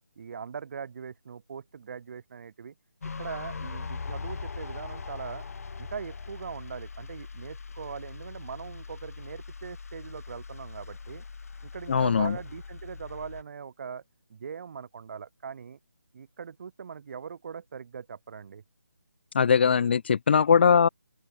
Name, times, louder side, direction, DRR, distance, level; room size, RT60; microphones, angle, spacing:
voice 1, 0.2-2.7 3.2-5.4 5.8-11.2 11.6-14.0 14.3-15.8 16.1-18.6, right 6 dB, 40° right, 3.0 m, -41 dB
sound 1, 3.0-13.4, left 5 dB, 55° left, 1.0 m, -41 dB
voice 2, 11.9-12.4 19.3-20.9, left 6 dB, 35° left, 0.4 m, -21 dB
open air
figure-of-eight pair, 155°, 10 cm